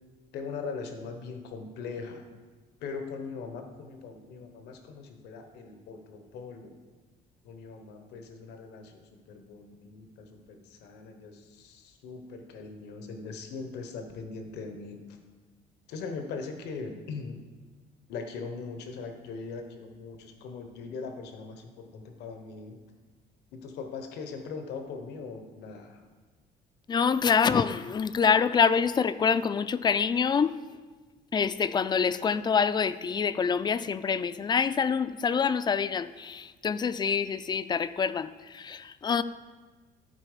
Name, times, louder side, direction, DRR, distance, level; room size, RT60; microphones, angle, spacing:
voice 1, 0.3-2.3 2.8-6.8 7.4-15.0 15.9-17.4 18.1-22.8 23.5-26.0, left 4 dB, 80° left, 6 dB, 1.0 m, -40 dB
voice 2, 26.9-30.5 31.3-39.2, left 6 dB, 25° left, 14 dB, 0.3 m, -26 dB
12.5 x 4.3 x 5.0 m, 1.3 s
cardioid pair, 110°, 17 cm